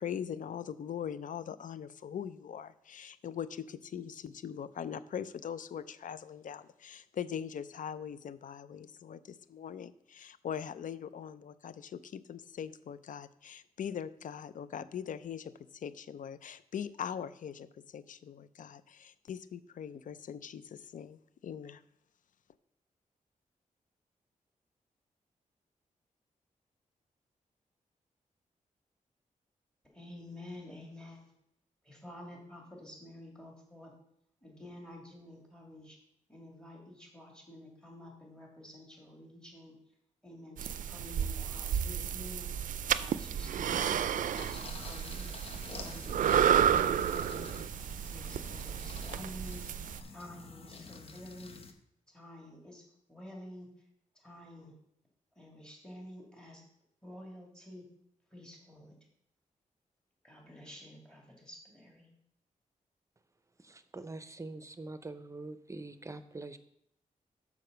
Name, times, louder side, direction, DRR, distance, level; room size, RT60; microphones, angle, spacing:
voice 1, 0.0-21.8, left 8 dB, 70° left, 15 dB, 0.5 m, -41 dB
voice 2, 29.8-31.3 31.8-33.9 34.4-36.0 36.3-39.8 40.2-42.5 43.0-45.3 45.8-47.6 48.1-51.6 52.1-53.7 54.1-54.8 55.4-56.6 57.0-57.9 58.3-59.0 60.2-62.1, left 1 dB, 5° left, -1 dB, 2.4 m, -50 dB
sound 1, 40.6-50.0, right 9 dB, 75° right, 0.4 m, -31 dB
sound 2, 44.3-51.7, left 4 dB, 45° left, 0.9 m, -48 dB
voice 3, 63.6-66.6, right 2 dB, 20° right, 11 dB, 0.6 m, -44 dB
6.7 x 4.8 x 6.6 m, 0.74 s
cardioid pair, 90°, 14 cm